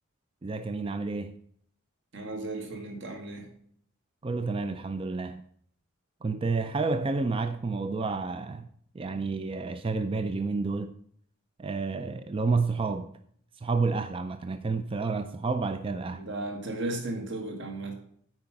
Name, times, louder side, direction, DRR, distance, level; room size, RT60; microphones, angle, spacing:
voice 1, 0.4-1.4 4.2-5.4 6.2-8.7 8.9-10.9 11.6-13.1 13.6-16.2, right 4 dB, 25° right, 0.3 m, -30 dB
voice 2, 2.1-3.5 16.1-17.9, right 2 dB, 55° right, 1.6 m, -35 dB
9.0 x 4.8 x 7.1 m
head